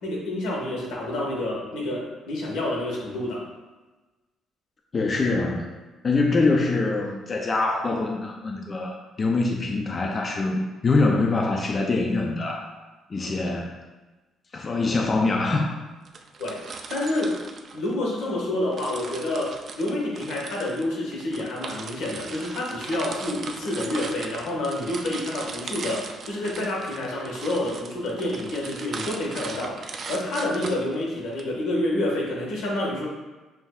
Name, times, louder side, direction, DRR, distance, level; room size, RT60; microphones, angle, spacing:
voice 1, 0.0-3.5 16.4-16.6 16.9-17.4 17.7-33.1, left 1 dB, 90° left, -3 dB, 1.4 m, -28 dB
voice 2, 4.9-5.8 6.0-12.7 13.1-13.8 14.5-15.7, left 3 dB, 30° left, 1 dB, 0.4 m, -24 dB
sound 1, 16.1-18.3 18.7-31.4, right 4 dB, 40° right, 0.4 m, -38 dB
7.1 x 2.6 x 2.3 m, 1.2 s
cardioid pair, 150°, 0 cm